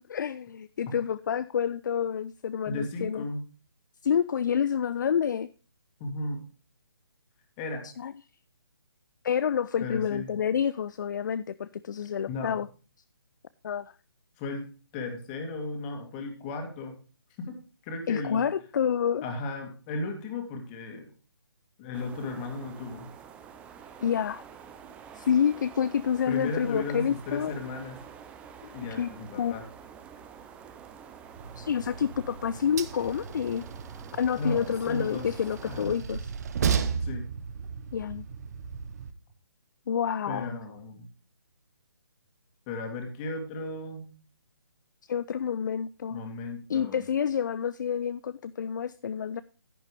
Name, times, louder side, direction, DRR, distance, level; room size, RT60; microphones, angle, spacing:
voice 1, 0.0-3.2 4.0-5.5 7.8-8.1 9.2-12.7 13.6-13.9 18.1-19.2 24.0-24.4 25.2-27.5 28.6-28.7 29.0-29.1 29.4-29.5 31.6-33.6 34.2-36.2 37.9-38.3 39.9-40.6 45.1-46.2 46.7-49.4, left 8 dB, 45° left, 0.4 m, -28 dB
voice 2, 2.7-3.4 6.0-6.4 7.6-7.9 9.8-10.3 12.3-12.6 14.4-16.9 17.4-17.6 17.8-18.5 19.2-21.1 21.8-23.1 26.3-28.0 28.7-29.7 34.4-35.3 35.7-36.0 37.0-37.2 40.3-41.1 42.7-44.1 46.1-47.0, left 2 dB, 20° left, 2.2 m, -35 dB
sound 1, 21.9-35.9, right 7 dB, 10° right, 0.5 m, -48 dB
Train, 31.4-39.1, right 6 dB, 40° right, 0.9 m, -34 dB
10.5 x 10.5 x 3.3 m
figure-of-eight pair, 150°, 13 cm